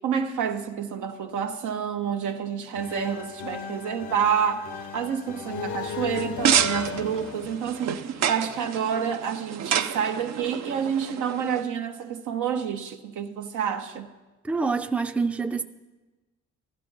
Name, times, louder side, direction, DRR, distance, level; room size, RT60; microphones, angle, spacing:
voice 1, 0.0-14.1, right 7 dB, 80° right, 1.0 m, -28 dB
sound 1, 2.7-8.5, left 6 dB, 75° left, 0.8 m, -36 dB
sound 2, 6.1-11.6, right 8 dB, 60° right, 0.6 m, -28 dB
voice 2, 14.4-15.6, right 4 dB, 5° right, 0.5 m, -26 dB
15.5 x 12.0 x 3.9 m
cardioid pair, 90°, 30 cm